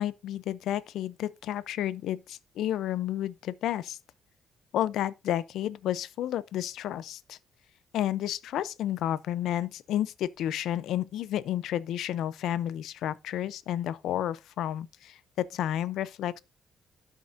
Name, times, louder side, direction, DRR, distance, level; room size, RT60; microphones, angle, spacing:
voice 1, 0.0-4.0 4.7-7.4 7.9-16.4, left 12 dB, 80° left, 0.6 m, -31 dB
12.5 x 6.0 x 2.6 m
cardioid pair, 90°, 0 cm